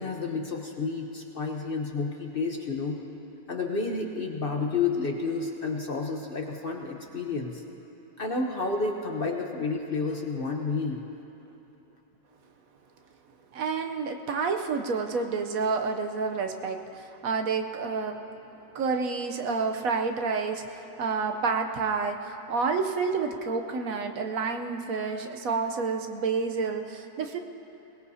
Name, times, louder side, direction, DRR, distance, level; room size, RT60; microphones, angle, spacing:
voice 1, 0.0-3.0 3.5-7.6 8.2-11.0, left 4 dB, 40° left, 1 dB, 1.0 m, -30 dB
voice 2, 13.5-18.2 18.7-20.6 21.0-27.4, right 4 dB, 70° right, 5 dB, 1.2 m, -29 dB
21.5 x 19.0 x 2.8 m, 3.0 s
omnidirectional pair, 1.6 m